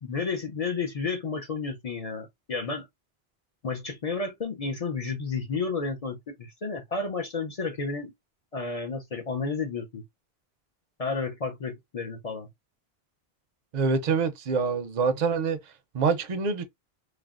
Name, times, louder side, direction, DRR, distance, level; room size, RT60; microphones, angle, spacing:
voice 1, 0.0-2.8 3.6-8.1 8.5-10.0 11.0-12.5, left 4 dB, 45° left, 0.5 m, -31 dB
voice 2, 13.7-15.6 15.9-16.6, right 5 dB, 55° right, 0.6 m, -25 dB
3.3 x 2.1 x 2.4 m
omnidirectional pair, 1.1 m